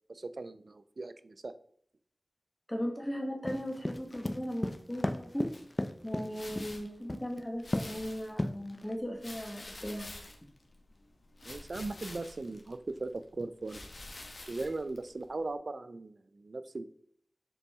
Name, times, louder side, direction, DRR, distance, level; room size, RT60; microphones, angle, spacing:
voice 1, 0.1-1.5 11.4-13.9 14.5-16.9, right 3 dB, 65° right, 12 dB, 0.4 m, -39 dB
voice 2, 2.7-5.5 6.0-10.1, equal, 15° left, 2 dB, 1.2 m, -37 dB
sound 1, 3.5-6.7 7.1-7.4 7.7-8.0 8.4-8.9, left 1 dB, 30° left, 0.5 m, -33 dB
sound 2, 5.5-15.5, left 2 dB, 65° left, 1.1 m, -50 dB
6.8 x 4.2 x 3.5 m, 0.63 s
wide cardioid pair, 70°, 0 cm